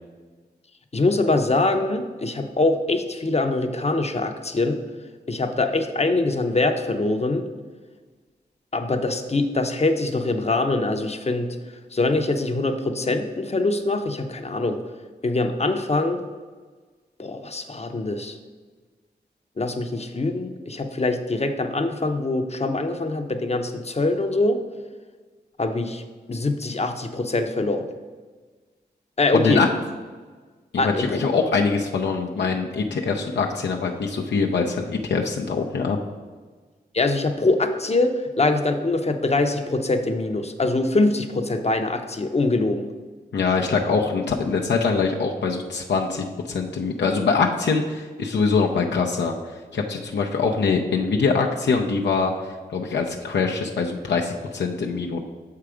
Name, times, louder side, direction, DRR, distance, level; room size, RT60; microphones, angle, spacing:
voice 1, 0.9-4.8 5.3-7.4 8.7-11.6 11.9-14.8 15.2-16.2 17.2-18.4 19.6-24.6 25.6-26.0 26.3-27.9 29.2-29.6 30.8-31.2 36.9-42.9, left 2 dB, 35° left, 6 dB, 0.8 m, -23 dB
voice 2, 29.3-29.7 30.8-36.0 43.3-55.2, left 4 dB, 75° left, 0 dB, 0.6 m, -23 dB
6.8 x 4.7 x 4.9 m, 1.4 s
cardioid pair, 45°, 18 cm